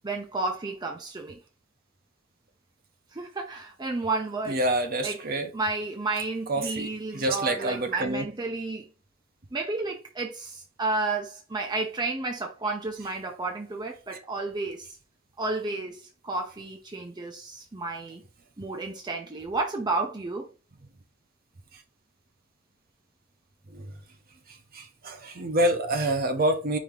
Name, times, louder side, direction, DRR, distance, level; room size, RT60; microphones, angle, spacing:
voice 1, 0.0-1.4 3.1-4.6 5.0-5.2 5.5-8.9 9.5-15.0 15.4-18.2 18.6-20.5, right 3 dB, 20° right, 0.6 m, -32 dB
voice 2, 4.5-5.5 6.5-8.3 21.7-21.8 23.7-24.0 24.5-26.8, right 1 dB, 50° right, 0.8 m, -27 dB
5.0 x 2.8 x 3.6 m
head